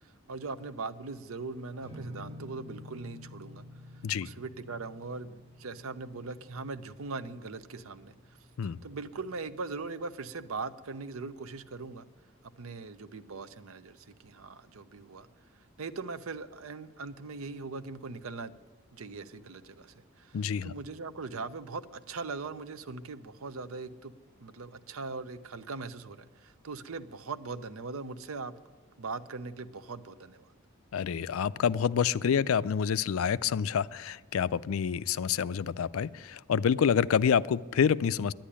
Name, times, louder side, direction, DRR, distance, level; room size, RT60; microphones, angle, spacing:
voice 1, 0.3-3.6 4.2-8.1 8.8-12.1 12.6-15.3 15.8-18.5 18.9-20.4 20.6-24.1 24.4-28.5 29.0-30.5, right 4 dB, 80° right, 13 dB, 0.7 m, -40 dB
sound 1, 1.8-9.4, left 1 dB, 25° right, 5.7 m, -50 dB
voice 2, 20.3-20.7 30.9-38.3, left 7 dB, 75° left, 18 dB, 0.4 m, -27 dB
10.5 x 10.0 x 10.0 m, 1.3 s
head